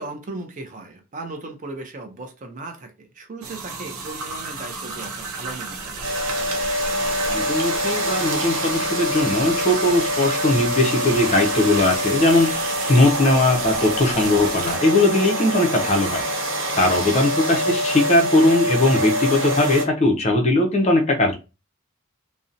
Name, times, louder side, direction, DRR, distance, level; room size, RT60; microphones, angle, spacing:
voice 1, 0.0-6.1 17.0-17.4, right 2 dB, 35° right, 5 dB, 0.5 m, -37 dB
sound 1, 3.4-14.8, right 4 dB, 80° right, 0.6 m, -33 dB
sound 2, 6.0-19.8, equal, 55° right, 0.9 m, -25 dB
voice 2, 7.3-16.2 16.8-21.3, left 2 dB, 30° left, 3 dB, 0.5 m, -19 dB
2.6 x 2.0 x 2.5 m, 0.29 s
head